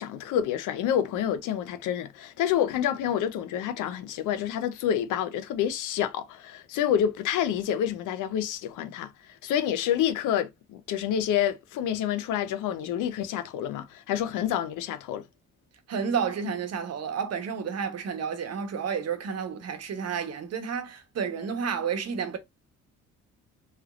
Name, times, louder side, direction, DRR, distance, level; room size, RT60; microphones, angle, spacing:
voice 1, 0.0-9.1 9.4-15.2, left 10 dB, 85° left, 0.6 m, -28 dB
voice 2, 15.9-22.4, right 6 dB, 55° right, 0.9 m, -31 dB
3.3 x 3.0 x 2.4 m
cardioid pair, 90°, 30 cm